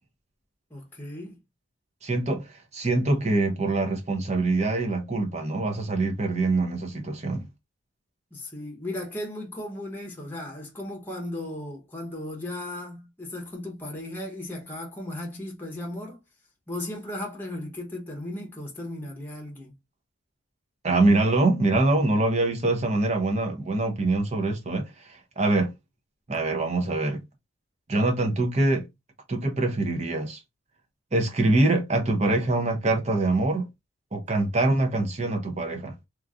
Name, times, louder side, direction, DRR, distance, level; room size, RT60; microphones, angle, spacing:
voice 1, 0.7-1.4 8.3-16.2 16.7-19.7, left 1 dB, 10° left, 0.8 m, -36 dB
voice 2, 2.0-7.5 20.8-25.7 26.3-27.2 27.9-28.9 29.3-30.4 31.1-33.7 34.1-35.9, right 2 dB, 35° right, 0.7 m, -24 dB
3.0 x 2.5 x 2.4 m
head